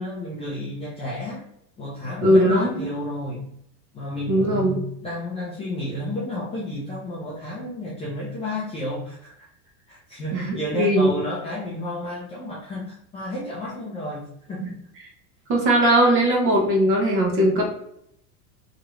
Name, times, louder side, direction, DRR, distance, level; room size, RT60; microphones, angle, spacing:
voice 1, 0.0-1.4 1.8-3.5 3.9-9.5 9.9-14.8, left 1 dB, 15° left, -7 dB, 0.4 m, -31 dB
voice 2, 2.2-2.9 4.3-4.8 10.3-11.1 14.6-14.7 15.5-17.6, right 1 dB, 30° right, 0 dB, 0.8 m, -19 dB
2.9 x 2.4 x 3.0 m, 0.72 s
supercardioid pair, 150°, 43 cm